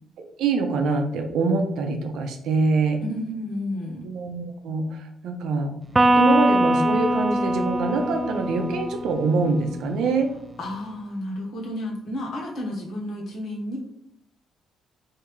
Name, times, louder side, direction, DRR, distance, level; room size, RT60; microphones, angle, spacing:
voice 1, 0.2-3.0 4.0-5.7 6.1-10.3, right 4 dB, 80° right, 5 dB, 0.6 m, -24 dB
voice 2, 3.0-4.0 10.6-13.8, left 1 dB, 70° left, -2 dB, 1.2 m, -31 dB
Electric guitar, 5.9-9.5, right 1 dB, 20° right, 0.3 m, -22 dB
3.5 x 2.8 x 3.0 m, 0.75 s
cardioid pair, 90°, 0 cm